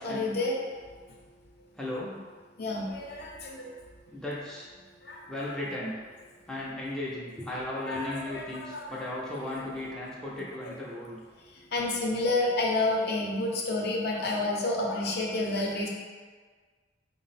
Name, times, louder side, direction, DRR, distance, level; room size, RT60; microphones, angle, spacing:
voice 1, 0.0-0.6 2.6-3.7 5.0-5.6 7.9-9.1 9.4-9.5 11.7-15.9, left 2 dB, 55° left, -1 dB, 0.6 m, -30 dB
voice 2, 1.8-2.2 4.1-4.7 5.3-6.0 6.5-11.2, left 1 dB, 5° left, -7 dB, 0.4 m, -36 dB
4.0 x 2.0 x 4.0 m, 1.5 s
head